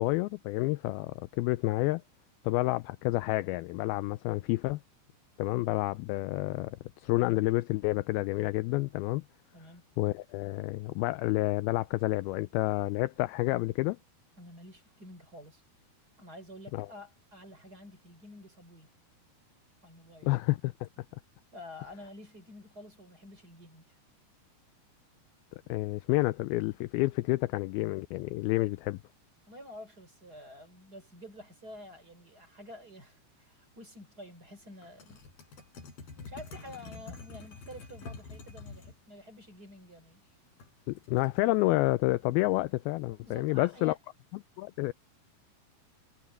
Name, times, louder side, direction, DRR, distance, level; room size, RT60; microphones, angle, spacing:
voice 1, 0.0-2.0 2.4-4.8 5.4-9.2 10.0-14.0 16.7-16.9 20.2-20.9 25.7-29.0 40.9-44.0 44.6-44.9, left 20 dB, 80° left, 2.3 m, -29 dB
voice 2, 9.5-9.9 14.4-15.6 16.2-18.9 19.8-20.3 21.5-24.0 29.5-35.2 36.2-40.2 43.1-44.0, left 1 dB, 25° right, 4.1 m, -49 dB
sound 1, 34.8-39.0 40.6-41.4, left 4 dB, 65° left, 8.1 m, -47 dB
omnidirectional pair, 4.6 m